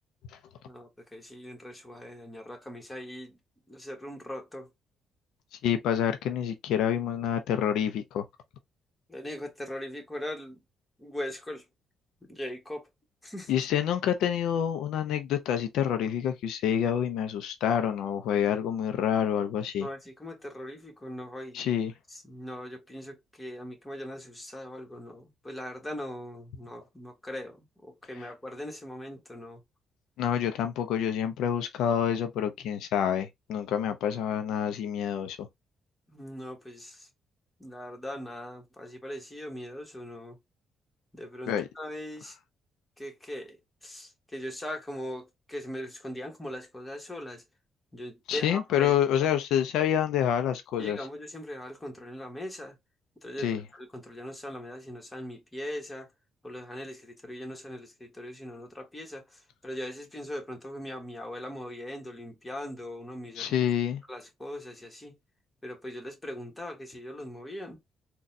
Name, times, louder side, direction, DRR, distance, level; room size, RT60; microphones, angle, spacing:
voice 1, 0.6-3.4 3.7-4.7 9.1-10.6 11.0-11.7 12.3-12.9 13.2-13.5 19.8-21.7 22.1-29.6 36.1-37.1 37.6-40.4 41.1-42.4 43.0-47.4 47.9-48.9 50.8-52.8 53.2-56.1 56.4-63.7 64.1-65.2 65.6-67.8, left 1 dB, 15° left, 1.3 m, -40 dB
voice 2, 5.6-8.2 13.5-19.9 21.5-21.9 30.2-35.5 41.5-41.7 48.3-51.0 53.4-53.6 63.4-64.0, left 9 dB, 85° left, 0.4 m, -27 dB
3.9 x 2.2 x 2.6 m
cardioid pair, 90°, 0 cm